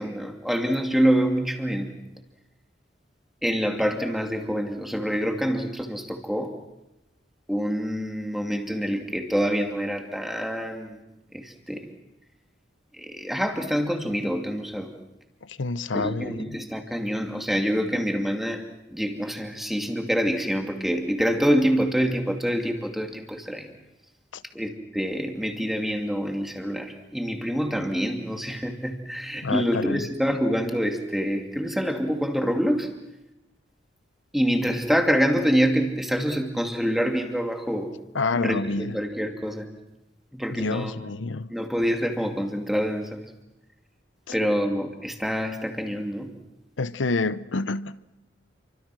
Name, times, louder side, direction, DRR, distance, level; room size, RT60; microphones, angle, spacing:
voice 1, 0.0-2.0 3.4-6.5 7.5-11.0 11.3-11.9 13.0-14.9 15.9-18.6 18.9-23.7 24.5-32.9 34.3-37.9 38.3-39.6 40.3-40.9 41.5-43.3 44.3-46.3, equal, ahead, 2.6 m, -26 dB
voice 2, 15.4-16.5 24.3-24.4 29.4-30.0 38.1-39.0 40.5-41.5 44.3-44.4 46.8-48.0, left 3 dB, 85° left, 0.8 m, -28 dB
29.5 x 25.0 x 6.1 m
head